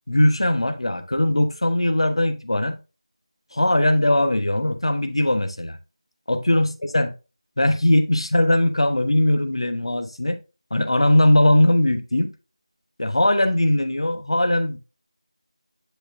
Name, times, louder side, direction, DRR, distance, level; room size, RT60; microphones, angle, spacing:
voice 1, 0.1-2.8 3.5-5.8 6.3-7.1 7.6-10.4 10.7-12.3 13.0-14.8, left 1 dB, 60° left, 1.3 m, -20 dB
11.0 x 4.3 x 2.7 m
figure-of-eight pair, 170°, 3 cm